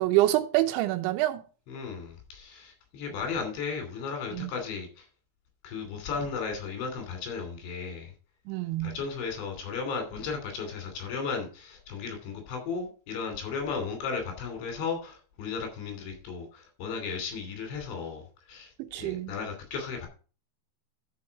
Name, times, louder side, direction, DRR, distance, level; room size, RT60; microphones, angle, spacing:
voice 1, 0.0-1.4 4.3-4.5 8.5-9.0 18.8-19.3, right 16 dB, 85° right, 3.2 m, -26 dB
voice 2, 1.7-5.1 5.6-8.1 8.8-20.1, left 5 dB, 75° left, 5.1 m, -35 dB
12.0 x 5.3 x 4.6 m
omnidirectional pair, 5.2 m